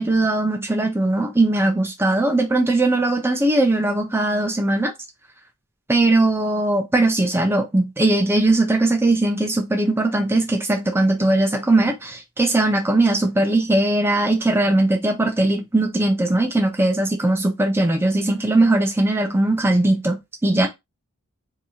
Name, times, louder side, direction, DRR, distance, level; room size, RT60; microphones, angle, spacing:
voice 1, 0.0-4.9 5.9-20.7, right 2 dB, 10° right, 0.4 m, -19 dB
2.9 x 2.7 x 3.5 m
head